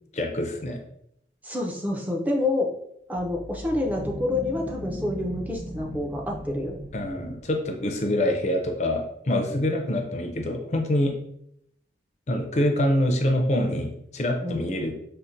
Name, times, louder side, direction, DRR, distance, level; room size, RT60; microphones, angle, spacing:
voice 1, 0.1-0.8 6.9-11.1 12.3-14.9, left 1 dB, 40° left, 4 dB, 0.5 m, -25 dB
voice 2, 1.4-2.7 3.1-6.8 14.4-14.7, left 2 dB, 10° right, -1 dB, 0.5 m, -28 dB
sound 1, 3.1-7.5, equal, 25° right, 0.9 m, -38 dB
5.5 x 2.1 x 2.5 m, 0.74 s
head